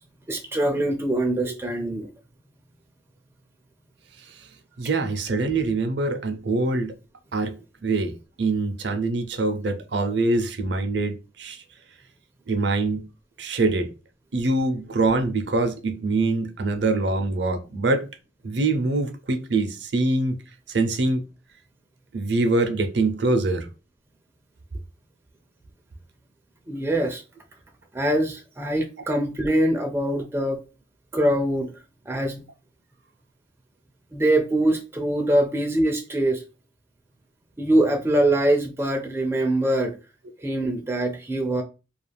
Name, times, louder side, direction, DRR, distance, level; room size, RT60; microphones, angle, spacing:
voice 1, 0.3-2.1 26.7-27.2 27.9-30.6 31.1-31.7 32.1-32.4 34.1-36.4 37.6-40.0 40.4-41.6, right 1 dB, 15° right, 0.4 m, -23 dB
voice 2, 4.8-6.9 7.3-7.5 7.8-11.6 12.5-13.1 13.4-13.9 14.3-18.0 18.4-20.3 20.7-21.2 22.1-23.7, right 3 dB, 65° right, 0.5 m, -24 dB
2.4 x 2.3 x 3.2 m
head